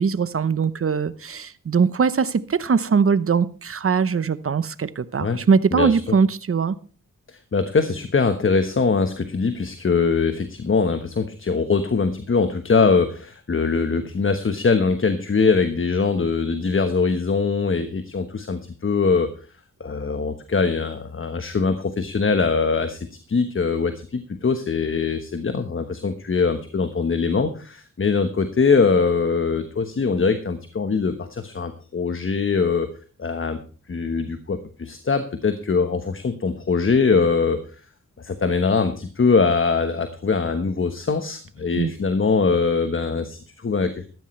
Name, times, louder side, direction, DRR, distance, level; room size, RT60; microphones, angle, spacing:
voice 1, 0.0-6.8 41.8-41.9, right 5 dB, 45° right, 16 dB, 0.8 m, -21 dB
voice 2, 7.3-19.3 19.8-32.9 33.2-33.6 33.9-37.6 38.2-44.0, left 4 dB, 40° left, 9 dB, 1.2 m, -22 dB
14.0 x 13.5 x 3.2 m, 0.38 s
wide cardioid pair, 90°, 31 cm